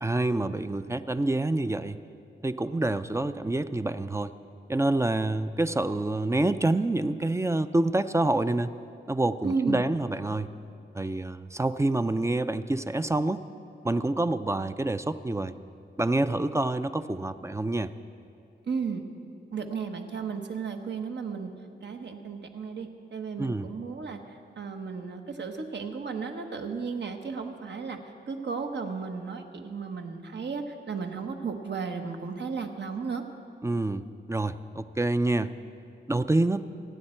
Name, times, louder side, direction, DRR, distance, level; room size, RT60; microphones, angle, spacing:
voice 1, 0.0-2.0 2.4-4.3 4.7-8.7 9.1-10.5 10.9-13.4 13.8-15.5 16.0-17.9 23.4-23.7 33.6-35.5 36.1-36.6, right 2 dB, 15° right, 11 dB, 0.4 m, -27 dB
voice 2, 9.4-9.8 18.6-19.0 19.5-21.5 21.8-28.0 28.3-33.2, right 5 dB, 75° right, 5 dB, 1.2 m, -34 dB
27.5 x 10.0 x 4.4 m, 2.6 s
wide cardioid pair, 140°, 18 cm